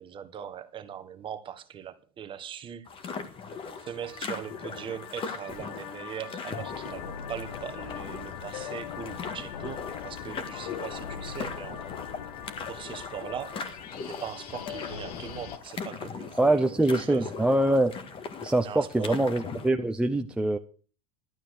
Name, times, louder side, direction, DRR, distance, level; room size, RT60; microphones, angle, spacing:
voice 1, 0.0-3.1 3.8-11.9 12.7-13.8 14.0-17.3 18.6-19.3, right 9 dB, 25° right, 1.6 m, -40 dB
sound 1, 2.9-19.7, left 5 dB, 25° left, 1.9 m, -40 dB
sound 2, 3.6-15.6, left 9 dB, 80° left, 1.7 m, -41 dB
voice 2, 16.4-17.9 18.4-20.6, right 1 dB, 5° right, 0.6 m, -24 dB
12.5 x 9.0 x 6.5 m
supercardioid pair, 135°, 20 cm